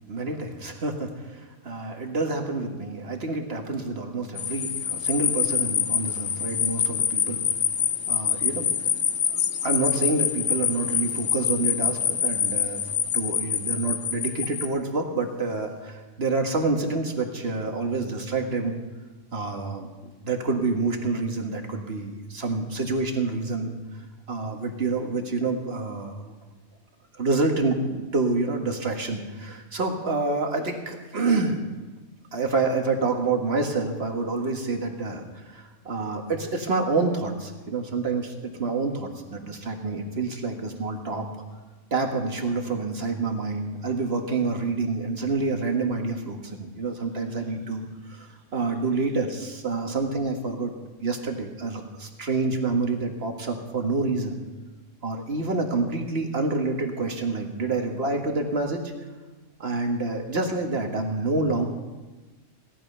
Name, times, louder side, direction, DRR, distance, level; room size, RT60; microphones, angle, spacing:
voice 1, 0.1-7.4 8.1-8.7 9.3-12.8 13.1-18.8 19.3-23.8 24.3-26.3 27.2-31.6 32.3-41.3 41.9-50.7 51.0-54.4 55.0-58.9 59.6-61.7, right 3 dB, 55° right, 3 dB, 1.9 m, -28 dB
sound 1, 4.4-14.7, left 8 dB, 85° left, 1.2 m, -26 dB
17.0 x 12.0 x 5.5 m, 1.2 s
omnidirectional pair, 1.3 m